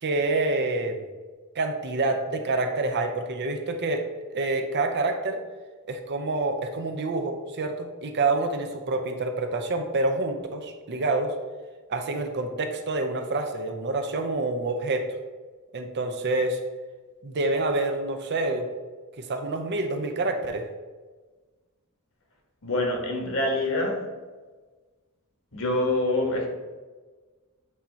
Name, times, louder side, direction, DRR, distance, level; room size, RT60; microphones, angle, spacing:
voice 1, 0.0-1.0 1.5-4.1 4.3-5.4 5.9-11.3 11.9-15.0 15.7-16.6 17.2-18.7 19.2-20.7, right 2 dB, 50° right, 6 dB, 0.6 m, -27 dB
voice 2, 22.6-24.1 25.5-26.5, left 2 dB, 65° left, 1 dB, 1.4 m, -25 dB
8.3 x 2.8 x 4.4 m, 1.3 s
head